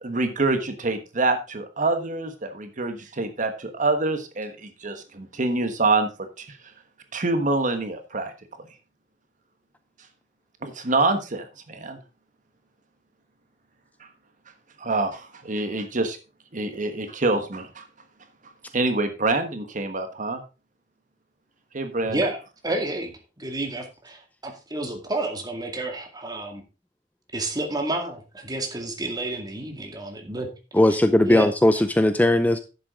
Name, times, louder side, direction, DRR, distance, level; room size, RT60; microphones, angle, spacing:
voice 1, 0.0-6.6 7.1-8.3 10.6-12.0 14.0-14.1 14.8-16.2 16.5-17.8 18.7-20.4 21.7-22.2, right 3 dB, 45° right, 8 dB, 1.3 m, -26 dB
voice 2, 22.0-22.4 22.6-26.6 27.3-30.5 31.2-31.5, right 2 dB, 20° right, 3 dB, 2.2 m, -30 dB
voice 3, 30.7-32.6, left 1 dB, 10° left, 10 dB, 0.5 m, -18 dB
10.5 x 7.9 x 3.7 m, 0.31 s
head